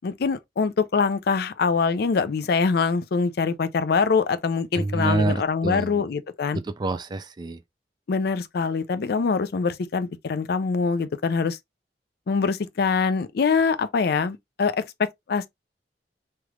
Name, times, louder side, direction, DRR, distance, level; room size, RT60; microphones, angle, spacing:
voice 1, 0.0-6.6 8.1-11.6 12.3-15.5, left 5 dB, 60° left, 0.4 m, -24 dB
voice 2, 4.7-6.1 6.5-7.6, right 2 dB, 25° right, 0.3 m, -27 dB
3.3 x 2.4 x 2.9 m
head